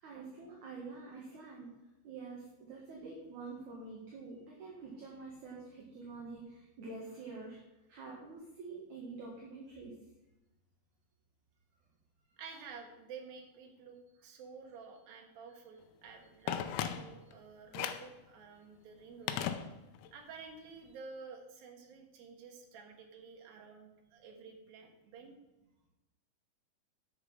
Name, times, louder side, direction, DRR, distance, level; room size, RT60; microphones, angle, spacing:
voice 1, 0.0-1.7 2.0-7.6 7.9-10.0, right 3 dB, 60° right, -3 dB, 2.8 m, -47 dB
voice 2, 12.4-19.4 19.9-25.4, right 5 dB, 75° right, 2 dB, 3.2 m, -51 dB
Telephone, 16.5-17.3 17.7-18.2 19.3-20.1 20.4-20.5, left 9 dB, 90° left, 2.6 m, -37 dB
9.8 x 6.7 x 5.5 m, 1.0 s
omnidirectional pair, 4.3 m